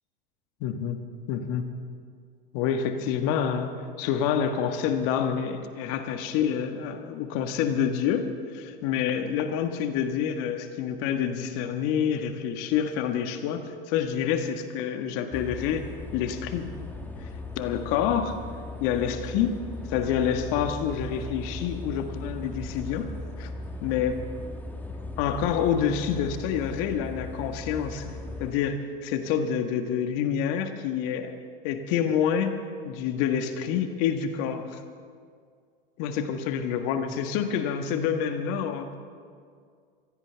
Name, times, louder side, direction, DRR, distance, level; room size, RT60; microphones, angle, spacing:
voice 1, 0.6-1.0 1.3-1.7 2.5-3.7 4.0-16.7 17.6-18.4 18.8-19.6 19.9-23.1 23.4-23.5 23.8-24.2 25.2-28.1 28.4-31.3 31.6-32.6 32.8-34.8 36.0-38.9, left 8 dB, 50° left, 7 dB, 1.7 m, -27 dB
sound 1, 15.3-28.5, left 2 dB, 5° left, 1.5 m, -38 dB
24.5 x 16.5 x 3.5 m, 2.1 s
hypercardioid pair, 85°, 29 cm